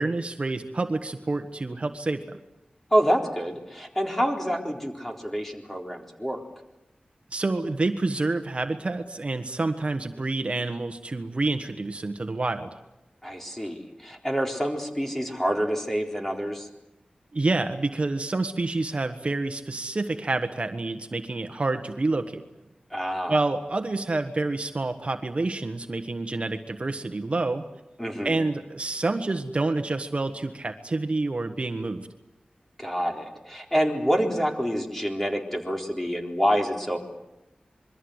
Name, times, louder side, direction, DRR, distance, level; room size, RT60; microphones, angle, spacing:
voice 1, 0.0-2.4 7.3-12.7 17.3-22.4 23.3-27.6 28.2-32.1, right 2 dB, 45° right, 7 dB, 1.4 m, -28 dB
voice 2, 2.9-6.4 13.2-16.7 22.9-23.4 28.0-28.4 32.8-37.0, equal, 10° left, 2 dB, 4.0 m, -27 dB
26.5 x 22.5 x 8.1 m, 0.92 s
wide cardioid pair, 90°, 3 cm